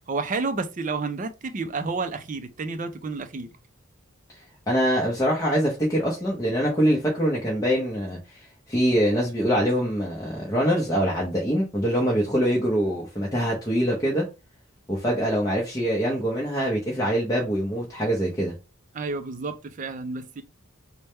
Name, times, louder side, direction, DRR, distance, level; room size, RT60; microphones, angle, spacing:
voice 1, 0.1-3.5 18.9-20.4, right 3 dB, 35° right, 0.4 m, -30 dB
voice 2, 4.7-8.4 8.7-14.3 14.9-18.5, equal, 15° left, 0.7 m, -24 dB
3.4 x 2.2 x 4.2 m
head